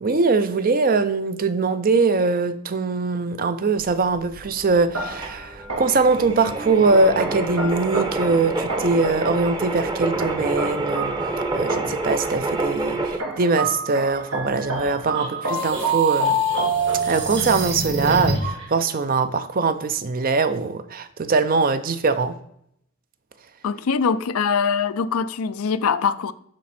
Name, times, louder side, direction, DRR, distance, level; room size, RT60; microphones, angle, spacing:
voice 1, 0.0-11.2 11.5-16.4 17.0-22.4, right 4 dB, 40° right, 0.5 m, -22 dB
sound 1, 3.8-13.2, right 2 dB, 20° right, 0.9 m, -28 dB
sound 2, 4.9-6.2 7.2-9.2 10.2-12.2 13.2-17.5, right 2 dB, 75° right, 1.5 m, -27 dB
sound 3, 15.1-18.6, right 2 dB, 60° right, 2.3 m, -28 dB
voice 2, 23.6-26.3, left 6 dB, 80° left, 0.5 m, -23 dB
11.5 x 4.2 x 4.3 m
head